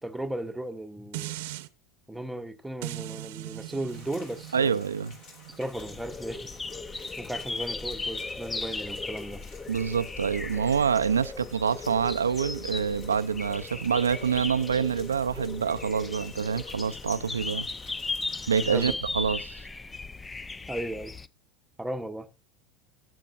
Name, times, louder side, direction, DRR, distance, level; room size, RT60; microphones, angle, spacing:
voice 1, 0.0-1.4 2.1-4.7 5.5-6.5 7.2-9.4 18.7-19.0 20.7-21.2 21.8-22.3, right 1 dB, 5° right, 1.1 m, -36 dB
sound 1, 1.1-1.7 2.8-8.0 8.4-8.5, right 18 dB, 65° right, 0.9 m, -41 dB
Rain, 3.9-18.9, left 3 dB, 50° left, 3.5 m, -53 dB
voice 2, 4.5-5.1 9.7-17.7 18.5-19.6, right 6 dB, 85° right, 0.5 m, -26 dB
sound 2, 5.7-21.3, left 3 dB, 15° left, 0.5 m, -37 dB
15.0 x 9.1 x 2.6 m
hypercardioid pair, 80°, 0 cm